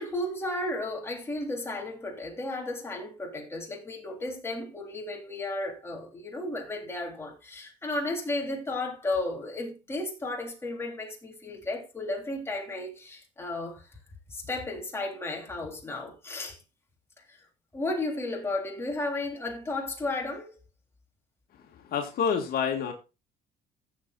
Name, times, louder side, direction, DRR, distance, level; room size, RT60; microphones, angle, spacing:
voice 1, 0.0-13.9 14.3-16.6 17.2-17.4 17.7-20.6, left 2 dB, 15° left, 3.5 m, -34 dB
voice 2, 21.7-22.9, left 7 dB, 65° left, 1.9 m, -28 dB
15.5 x 7.5 x 2.5 m
cardioid pair, 110°, 17 cm